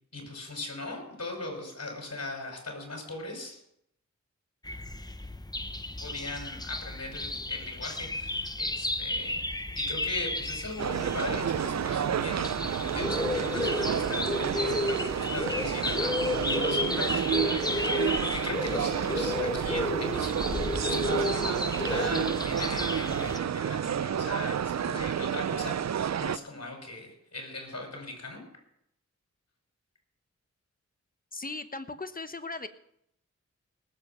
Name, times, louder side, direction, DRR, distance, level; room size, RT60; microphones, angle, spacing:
voice 1, 0.1-3.6 6.0-9.4 9.7-28.4, left 2 dB, 60° left, 1 dB, 5.8 m, -39 dB
sound 1, 4.6-23.4, left 2 dB, 15° left, 0.8 m, -32 dB
sound 2, 10.8-26.4, right 8 dB, 65° right, 0.5 m, -30 dB
voice 2, 31.3-32.7, left 3 dB, 30° left, 9 dB, 1.1 m, -37 dB
19.5 x 7.7 x 5.8 m, 0.74 s
wide cardioid pair, 60°, 29 cm